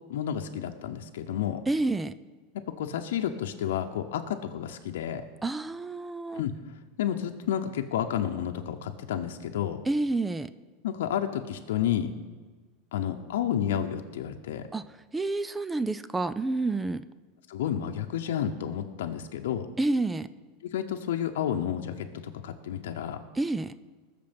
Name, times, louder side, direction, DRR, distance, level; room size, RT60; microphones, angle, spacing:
voice 1, 0.1-1.6 2.5-5.2 6.4-9.8 10.8-12.1 12.9-14.7 17.5-19.7 20.6-23.2, left 10 dB, 90° left, 4 dB, 0.8 m, -31 dB
voice 2, 1.7-2.1 5.4-6.4 9.9-10.5 14.7-14.8 15.1-17.0 19.8-20.3 23.3-23.7, right 2 dB, 10° right, 15 dB, 0.3 m, -29 dB
20.0 x 6.7 x 5.3 m, 1.4 s
supercardioid pair, 145°, 0 cm